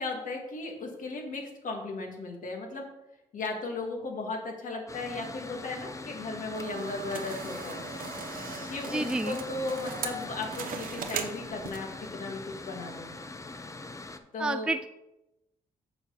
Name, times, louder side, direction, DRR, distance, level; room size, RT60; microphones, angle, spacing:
voice 1, 0.0-2.9 3.3-7.8 8.7-13.1 14.3-14.7, left 3 dB, 60° left, 2 dB, 1.8 m, -36 dB
Mechanical fan, 4.9-14.2, left 3 dB, 20° left, 0.7 m, -41 dB
sound 1, 6.5-12.0, right 7 dB, 70° right, 0.8 m, -39 dB
voice 2, 8.9-9.4 14.4-14.9, right 2 dB, 5° right, 10 dB, 0.3 m, -30 dB
6.6 x 4.5 x 5.7 m, 0.92 s
supercardioid pair, 60°, 15 cm